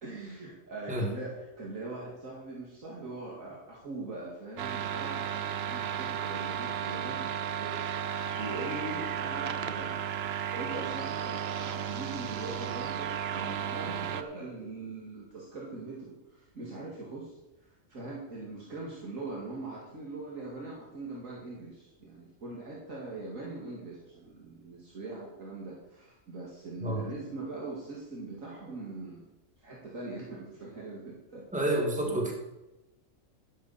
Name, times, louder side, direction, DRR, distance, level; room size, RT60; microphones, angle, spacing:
voice 1, 0.0-10.2 10.5-17.3 17.6-29.3 29.6-31.8 32.1-32.2, right 2 dB, 75° right, -4 dB, 2.7 m, -41 dB
sound 1, 4.6-14.2, right 8 dB, 55° right, 0.9 m, -34 dB
voice 2, 31.5-32.3, right 1 dB, 5° right, 1 dB, 1.9 m, -29 dB
13.0 x 10.5 x 4.3 m, 1.0 s
omnidirectional pair, 1.4 m